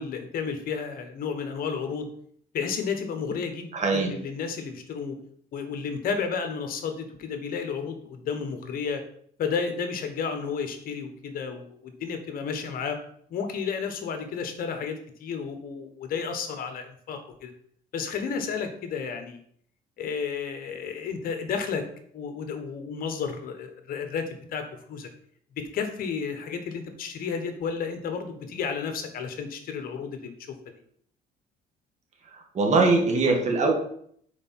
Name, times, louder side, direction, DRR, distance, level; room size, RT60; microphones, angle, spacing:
voice 1, 0.0-2.1 2.5-5.2 5.5-9.0 9.4-13.0 13.3-17.5 17.9-19.4 20.0-21.8 22.1-25.1 25.6-30.3, left 6 dB, 60° left, 6 dB, 1.2 m, -32 dB
voice 2, 3.7-4.1 32.3-33.7, right 3 dB, 45° right, 2 dB, 1.7 m, -22 dB
5.2 x 4.6 x 5.7 m, 0.64 s
cardioid pair, 110°, 17 cm